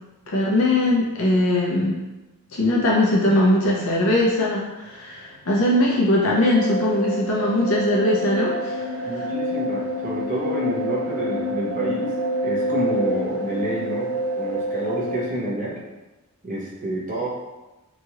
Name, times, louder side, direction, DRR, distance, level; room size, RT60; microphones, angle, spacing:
voice 1, 0.3-1.9 2.5-9.1, left 1 dB, 70° left, -4 dB, 0.6 m, -20 dB
sound 1, 6.4-15.3, equal, 75° right, 0.5 m, -27 dB
voice 2, 9.0-12.1 12.4-15.8 16.4-17.3, right 1 dB, 35° right, -5 dB, 0.7 m, -28 dB
2.9 x 2.4 x 2.8 m, 1.1 s
head